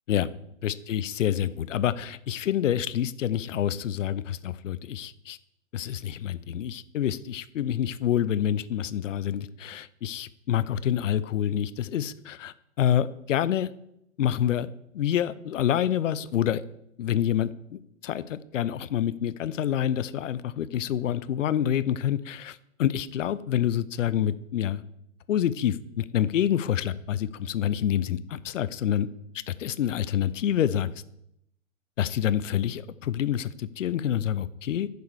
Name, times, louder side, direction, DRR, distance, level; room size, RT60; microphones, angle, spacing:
voice 1, 0.6-5.4 5.7-13.7 14.2-16.6 17.0-24.8 25.3-29.1 29.5-30.9 32.0-34.9, left 10 dB, 70° left, 17 dB, 0.6 m, -27 dB
10.5 x 7.0 x 4.8 m, 0.78 s
hypercardioid pair, 125°, 39 cm